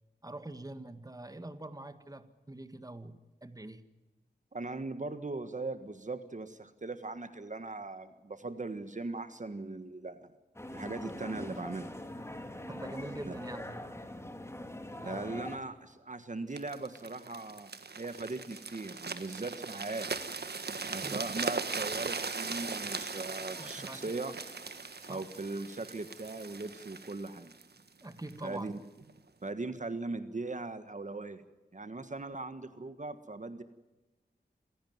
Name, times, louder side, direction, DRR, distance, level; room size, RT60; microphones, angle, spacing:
voice 1, 0.2-3.8 12.7-13.8 15.0-15.3 20.9-21.2 23.6-24.0 25.1-25.2 28.0-28.7, right 2 dB, 20° right, 10 dB, 1.8 m, -44 dB
voice 2, 4.5-10.3 10.7-11.9 13.2-13.3 15.0-20.1 20.7-24.4 25.1-27.5 28.4-28.7 29.4-31.4 31.7-33.6, right 3 dB, 45° right, 10 dB, 1.5 m, -39 dB
sound 1, 10.6-15.6, left 1 dB, 15° left, 2.9 m, -42 dB
sound 2, 16.6-28.4 29.0-29.2, right 4 dB, 70° right, 1.7 m, -39 dB
sound 3, 22.0-27.1, left 2 dB, 45° left, 4.5 m, -58 dB
27.5 x 16.5 x 9.5 m, 1.1 s
wide cardioid pair, 75°, 17 cm